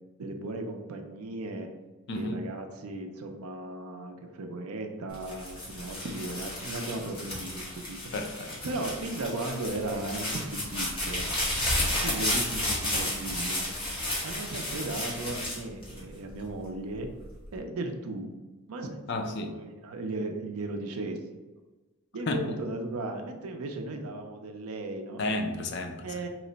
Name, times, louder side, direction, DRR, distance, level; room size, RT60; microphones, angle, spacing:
voice 1, 0.2-1.7 2.1-8.0 8.6-11.3 12.0-13.7 14.2-17.1 17.5-18.3 18.7-21.2 22.1-25.2 26.0-26.3, right 2 dB, 75° right, 5 dB, 0.5 m, -36 dB
voice 2, 2.1-2.4 8.1-8.5 19.1-19.6 22.3-22.4 25.2-26.1, left 2 dB, 50° left, 5 dB, 0.4 m, -32 dB
sound 1, 5.1-16.5 17.0-17.6, left 1 dB, 25° left, 1.0 m, -32 dB
3.0 x 2.1 x 3.8 m, 1.2 s
head